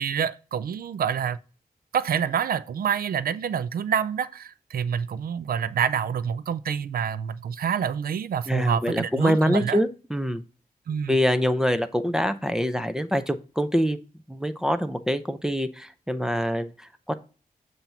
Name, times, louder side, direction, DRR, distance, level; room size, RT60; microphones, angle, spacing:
voice 1, 0.0-1.4 1.9-9.8 10.9-11.2, right 8 dB, 80° right, 0.4 m, -27 dB
voice 2, 8.5-10.4 11.1-14.0 14.3-17.1, equal, 5° right, 0.5 m, -25 dB
7.3 x 2.7 x 5.7 m
wide cardioid pair, 110°, 15 cm